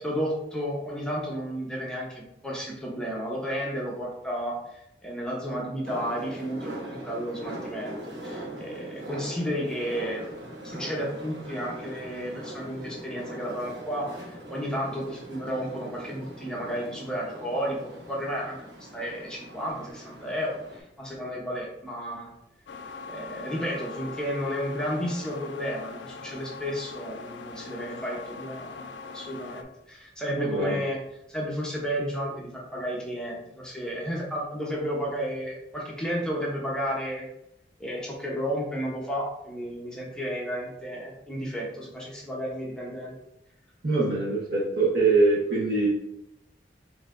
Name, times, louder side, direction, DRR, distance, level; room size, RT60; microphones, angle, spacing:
voice 1, 0.0-10.2 10.6-22.3 23.1-31.0 31.3-37.3 37.8-43.2, equal, 5° left, -4 dB, 0.7 m, -32 dB
sound 1, 5.8-20.8, right 1 dB, 80° right, 1.0 m, -41 dB
sound 2, 22.7-29.6, left 4 dB, 85° left, 0.4 m, -41 dB
voice 2, 30.3-30.8 43.8-45.9, right 3 dB, 60° right, -8 dB, 0.9 m, -23 dB
5.6 x 2.7 x 2.5 m, 0.83 s
head